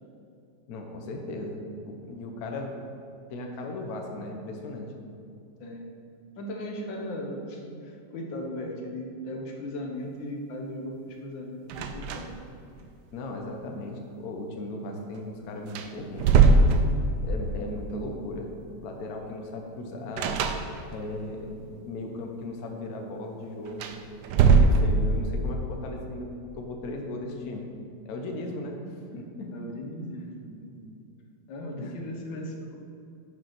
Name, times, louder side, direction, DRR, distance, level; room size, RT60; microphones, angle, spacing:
voice 1, 0.7-2.8 3.3-4.9 13.1-16.5 17.2-18.5 18.8-20.4 20.9-23.9 24.3-26.3 26.6-27.7 28.0-28.8 29.1-29.5 31.8-31.9, left 2 dB, 60° left, 2 dB, 1.2 m, -37 dB
voice 2, 6.4-7.7 8.1-12.4 29.5-30.9 31.5-32.8, left 1 dB, 80° left, 1 dB, 1.7 m, -37 dB
sound 1, 11.7-12.5 12.8-12.9 15.2-15.3 15.7-17.4 20.2-21.1 23.7-25.3, right 4 dB, 70° right, 1.1 m, -21 dB
7.4 x 5.7 x 5.8 m, 2.6 s
omnidirectional pair, 2.0 m